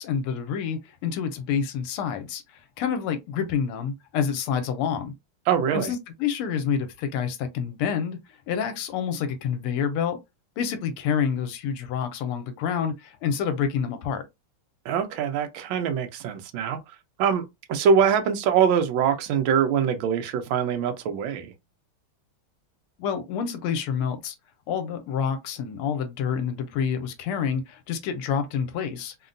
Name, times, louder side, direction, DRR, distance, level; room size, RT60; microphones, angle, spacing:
voice 1, 0.0-2.4 2.8-5.1 5.7-8.2 8.5-10.2 10.6-14.2 23.0-24.3 24.7-29.1, left 7 dB, 90° left, 1.5 m, -28 dB
voice 2, 5.5-5.9 14.8-16.8 17.2-21.5, right 7 dB, 75° right, 1.3 m, -23 dB
3.8 x 2.1 x 2.5 m
omnidirectional pair, 2.4 m